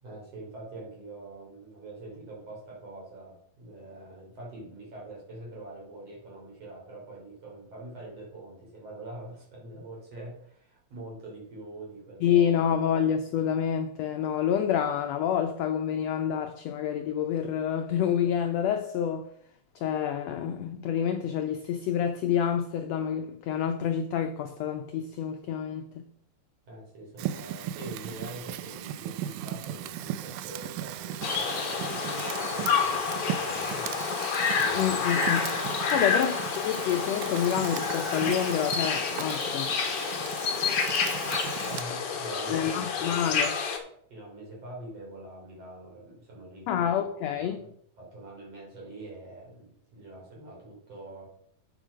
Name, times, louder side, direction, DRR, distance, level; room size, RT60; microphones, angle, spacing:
voice 1, 0.0-12.7 26.7-34.1 34.5-35.0 35.9-36.1 41.6-43.2 44.1-46.9 47.4-47.7 48.0-51.3, right 2 dB, 50° right, 4.3 m, -44 dB
voice 2, 12.2-19.3 19.7-25.9 34.7-35.5 35.9-39.7 42.5-43.6 46.7-47.6, left 9 dB, 85° left, 1.5 m, -28 dB
Fire, 27.2-41.8, right 12 dB, 90° right, 2.3 m, -37 dB
sound 1, 31.2-43.8, left 6 dB, 55° left, 1.9 m, -29 dB
8.8 x 6.5 x 5.1 m
omnidirectional pair, 3.8 m